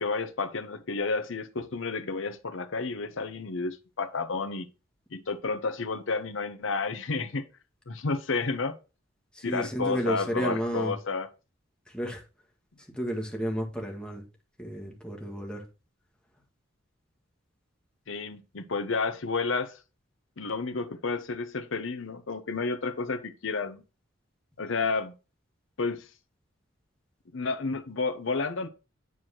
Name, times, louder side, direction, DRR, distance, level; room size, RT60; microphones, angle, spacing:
voice 1, 0.0-4.7 5.1-7.5 7.9-8.8 9.4-11.3 18.1-19.8 20.4-23.8 24.6-25.1 25.8-26.1 27.3-28.7, left 4 dB, 65° left, 0.8 m, -31 dB
voice 2, 9.3-10.9 11.9-12.2 12.8-14.2 14.6-15.7, equal, 5° left, 1.6 m, -32 dB
9.5 x 4.6 x 2.9 m
head